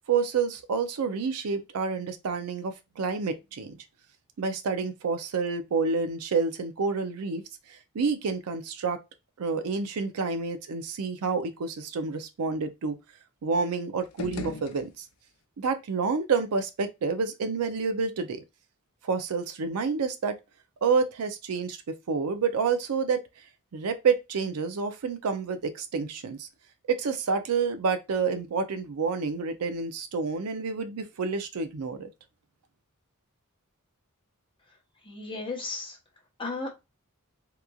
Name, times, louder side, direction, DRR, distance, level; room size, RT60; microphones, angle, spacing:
voice 1, 0.1-3.8 4.4-7.4 7.7-9.0 9.4-13.0 13.4-15.0 15.6-18.4 19.0-20.4 20.8-23.2 23.7-26.5 26.9-32.1, right 5 dB, 75° right, 0.5 m, -29 dB
sound 1, 14.0-15.4, left 4 dB, 70° left, 0.5 m, -40 dB
voice 2, 35.0-36.0 36.4-36.7, left 3 dB, 25° left, 0.8 m, -34 dB
2.9 x 2.4 x 2.2 m
head